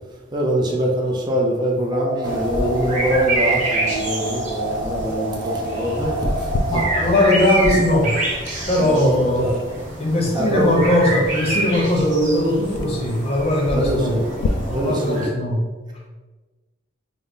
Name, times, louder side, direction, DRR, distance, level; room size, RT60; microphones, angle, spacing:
voice 1, 0.3-6.8 8.8-9.6 10.3-10.8 13.7-14.3 14.7-15.2, equal, 20° right, -1 dB, 0.4 m, -23 dB
sound 1, 1.9-6.9, right 2 dB, ahead, 0.9 m, -28 dB
sound 2, 2.2-15.3, right 1 dB, 40° right, 1.0 m, -27 dB
sound 3, 6.0-14.5, left 3 dB, 70° left, 0.3 m, -35 dB
voice 2, 6.7-8.2 8.7-9.5 10.0-14.2 14.6-15.7, left 1 dB, 30° left, -2 dB, 0.7 m, -19 dB
3.8 x 2.0 x 3.7 m, 1.3 s
head